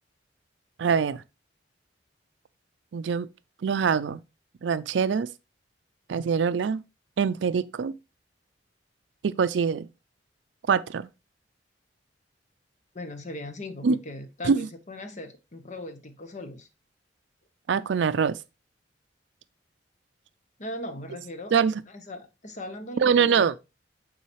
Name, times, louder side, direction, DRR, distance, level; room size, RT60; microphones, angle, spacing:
voice 1, 0.8-1.2 2.9-3.3 3.6-4.2 4.6-5.3 6.1-6.8 7.2-7.9 9.2-9.9 10.7-11.1 13.8-14.0 14.4-14.7 17.7-18.4 21.5-21.8 23.0-23.6, right 6 dB, 75° right, 0.4 m, -24 dB
voice 2, 12.9-16.7 20.6-21.5 21.9-23.6, left 1 dB, 40° left, 1.0 m, -39 dB
8.5 x 3.9 x 3.0 m
head